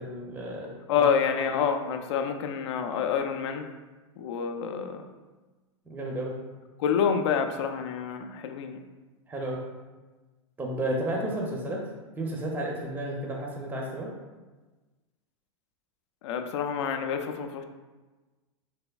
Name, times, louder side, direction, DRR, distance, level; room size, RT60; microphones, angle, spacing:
voice 1, 0.0-1.1 5.9-6.3 9.3-9.6 10.6-11.8 12.2-14.1, right 1 dB, 10° right, -1 dB, 0.5 m, -32 dB
voice 2, 0.9-3.7 4.2-5.1 6.8-8.8 16.2-17.6, left 7 dB, 65° left, 6 dB, 0.4 m, -28 dB
3.3 x 3.2 x 2.3 m, 1.2 s
hypercardioid pair, 105°, 16 cm